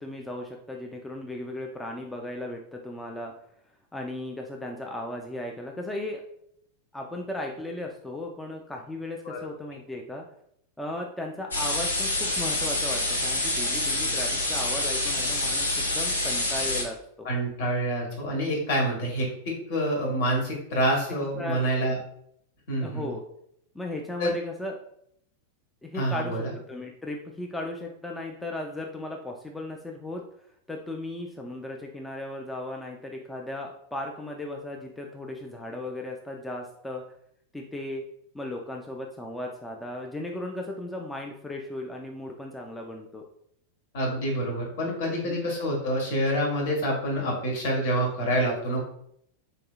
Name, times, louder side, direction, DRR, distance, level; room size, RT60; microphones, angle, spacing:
voice 1, 0.0-3.3 3.9-6.2 6.9-10.2 10.8-17.3 21.1-21.9 22.8-23.2 23.7-24.8 25.8-30.2 30.7-37.0 37.5-38.0 38.3-43.2 45.2-45.5, left 1 dB, 5° left, 1 dB, 0.3 m, -36 dB
sound 1, 11.5-16.8, left 2 dB, 75° left, 0.7 m, -27 dB
voice 2, 17.2-22.0 22.7-23.0 24.2-24.3 25.9-26.5 43.9-48.8, right 1 dB, 50° left, -1 dB, 1.1 m, -27 dB
4.0 x 2.7 x 2.3 m, 0.70 s
figure-of-eight pair, 90°, 0 cm